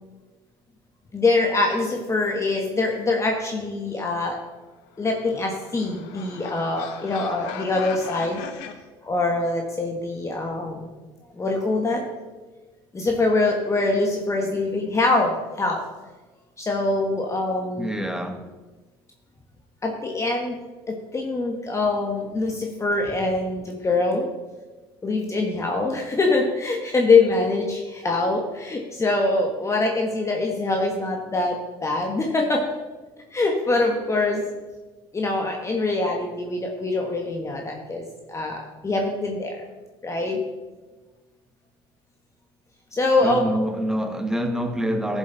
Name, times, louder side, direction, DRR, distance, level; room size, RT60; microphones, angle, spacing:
voice 1, 1.1-4.4 5.0-8.4 9.0-10.9 11.3-12.0 12.9-15.8 16.6-18.4 19.8-20.6 20.9-24.3 25.0-32.6 33.3-34.4 35.1-39.6 40.0-40.4 42.9-43.6, left 3 dB, 25° left, 1.6 m, -24 dB
sound 1, 4.9-8.7, left 8 dB, 80° left, 1.1 m, -39 dB
voice 2, 17.8-18.4 43.2-45.2, equal, 5° right, 1.5 m, -26 dB
14.0 x 7.4 x 4.1 m
supercardioid pair, 75°, 12 cm